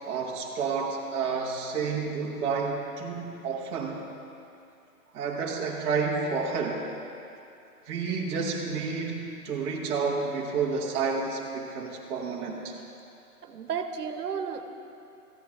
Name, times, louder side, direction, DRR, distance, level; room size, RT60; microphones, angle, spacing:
voice 1, 0.1-4.0 5.1-6.8 7.9-12.7, right 5 dB, 15° right, -3 dB, 0.8 m, -30 dB
voice 2, 13.4-14.6, right 7 dB, 80° right, 7 dB, 1.0 m, -33 dB
14.0 x 8.6 x 4.7 m, 2.6 s
hypercardioid pair, 150°, 46 cm